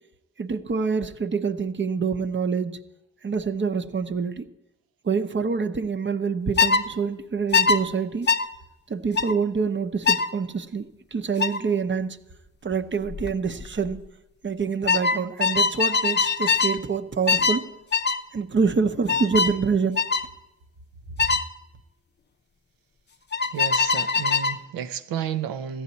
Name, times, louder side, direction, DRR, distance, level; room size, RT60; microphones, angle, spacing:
voice 1, 0.4-2.8 3.2-4.4 5.0-8.3 8.9-10.9 11.1-12.2 12.6-14.0 14.4-17.6 18.3-20.0, right 5 dB, 35° right, 0.8 m, -26 dB
sound 1, 6.6-6.8 7.5-7.8 8.3-8.5 9.2-9.3 10.1-10.3 11.4-11.6 13.1-13.3 13.6-14.0 14.9-16.8 17.3-17.6 17.9-18.2 19.1-19.6 20.0-20.3 21.2-21.5 23.3-24.6, left 4 dB, 30° left, 0.7 m, -22 dB
voice 2, 23.5-25.8, right 9 dB, 75° right, 0.7 m, -31 dB
14.5 x 9.4 x 4.1 m
supercardioid pair, 45°, 35 cm